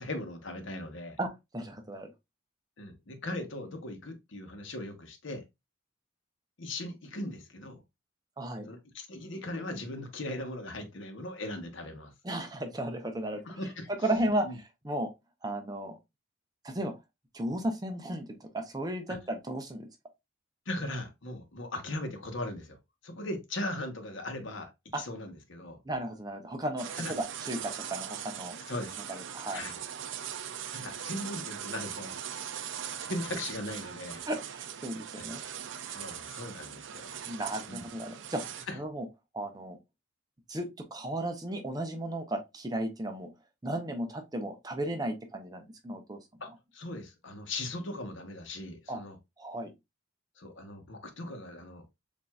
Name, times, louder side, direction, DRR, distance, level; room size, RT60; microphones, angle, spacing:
voice 1, 0.0-1.2 2.8-5.4 6.6-7.8 8.7-12.1 13.4-13.9 14.4-14.6 19.1-19.2 20.7-22.8 23.0-25.8 27.0-27.1 28.7-29.0 29.5-29.8 30.7-32.2 32.5-34.2 35.2-35.3 35.9-37.2 37.7-37.8 38.7-38.8 46.4-49.2 50.4-51.8, left 1 dB, 70° left, 1.0 m, -39 dB
voice 2, 1.2-2.1 8.4-8.7 12.2-13.4 14.0-15.1 15.4-16.0 16.6-16.9 17.3-19.9 24.9-25.0 25.8-28.6 29.1-29.6 34.2-35.4 37.3-38.4 38.7-39.0 39.3-39.8 40.5-43.3 43.6-46.2 48.9-49.0 49.4-49.7, right 1 dB, 20° right, 0.6 m, -34 dB
sound 1, 26.8-38.7, right 9 dB, 65° right, 0.4 m, -40 dB
7.2 x 2.6 x 2.3 m
head